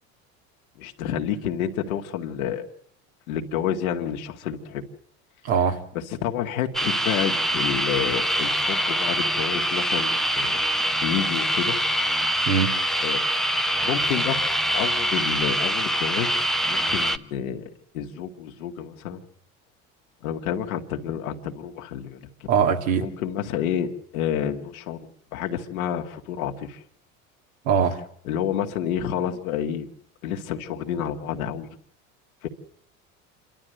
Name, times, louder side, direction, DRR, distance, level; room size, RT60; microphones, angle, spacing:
voice 1, 0.8-2.7 3.3-4.8 5.9-10.6 11.0-11.8 13.0-13.2 13.8-19.2 20.2-22.5 23.0-25.1 25.3-26.8 28.2-29.9 30.2-31.7 32.4-32.5, left 9 dB, 80° left, 4 dB, 2.0 m, -29 dB
voice 2, 5.4-5.8 12.5-12.7 22.5-23.1 27.7-28.0, right 7 dB, 80° right, 4 dB, 2.5 m, -21 dB
sound 1, 6.7-17.2, right 1 dB, ahead, 0.8 m, -24 dB
27.5 x 12.5 x 7.8 m, 0.67 s
hypercardioid pair, 80°, 42 cm